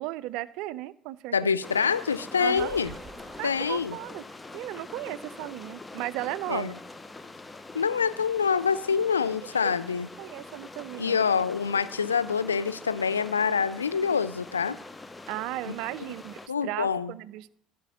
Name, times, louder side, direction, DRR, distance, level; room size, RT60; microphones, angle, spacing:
voice 1, 0.0-1.5 2.4-2.8 3.4-4.2 4.5-6.7 9.6-11.2 15.3-17.5, right 16 dB, 65° right, 19 dB, 0.3 m, -36 dB
voice 2, 1.3-2.9 3.4-4.0 6.5-6.7 7.7-10.1 11.0-14.8 15.7-15.8 16.5-17.1, left 6 dB, 90° left, 15 dB, 0.3 m, -26 dB
sound 1, 1.6-16.5, left 2 dB, 20° left, 0.7 m, -44 dB
sound 2, 2.5-4.6, right 4 dB, 30° right, 0.9 m, -48 dB
13.0 x 5.0 x 5.6 m, 0.70 s
figure-of-eight pair, 60°, 0 cm